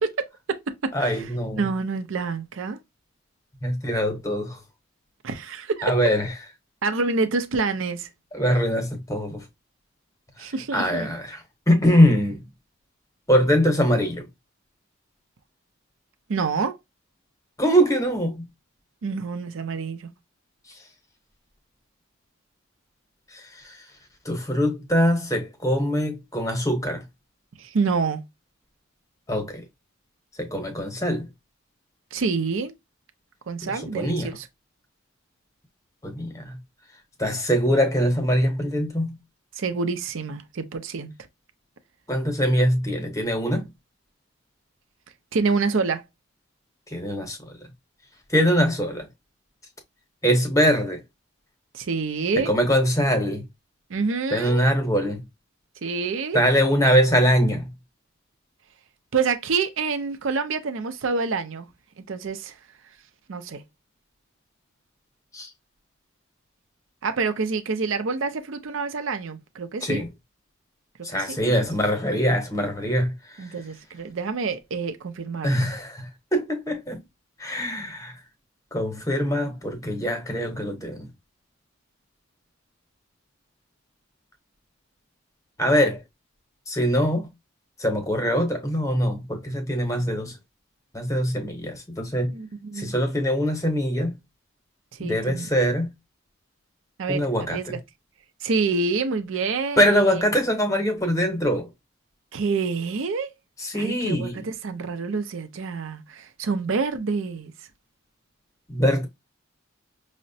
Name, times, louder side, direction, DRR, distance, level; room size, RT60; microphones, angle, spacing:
voice 1, 0.0-1.2 1.6-2.8 5.2-5.9 6.8-8.1 10.4-11.1 16.3-16.8 19.0-20.1 27.6-28.2 32.1-32.7 33.5-34.5 39.6-41.1 45.3-46.0 51.7-52.5 53.9-54.7 55.8-56.4 59.1-61.7 62.1-62.5 63.3-63.6 67.0-70.0 71.1-71.4 73.4-75.7 92.3-92.9 94.9-95.5 97.0-97.2 97.5-97.8 98.4-100.2 102.3-103.3 103.7-107.5, right 4 dB, 70° right, 0.5 m, -27 dB
voice 2, 0.9-1.7 3.6-4.6 5.8-6.3 8.3-9.5 10.4-12.4 13.3-14.3 17.6-18.5 20.7-20.8 23.3-23.9 24.2-27.0 29.3-29.6 30.4-31.3 33.6-34.3 36.0-36.6 37.2-39.2 42.1-43.7 46.9-47.6 48.3-49.1 50.2-51.0 52.4-53.5 54.3-55.3 56.3-57.7 65.3-65.5 69.8-70.1 71.0-73.5 75.4-77.0 77.4-78.2 78.7-81.1 85.6-86.0 86.7-87.3 87.8-90.4 90.9-92.3 92.7-94.2 95.0-95.9 97.1-97.8 99.8-101.7 103.6-104.5 108.7-109.1, equal, 15° left, 0.8 m, -23 dB
5.7 x 2.1 x 2.6 m
head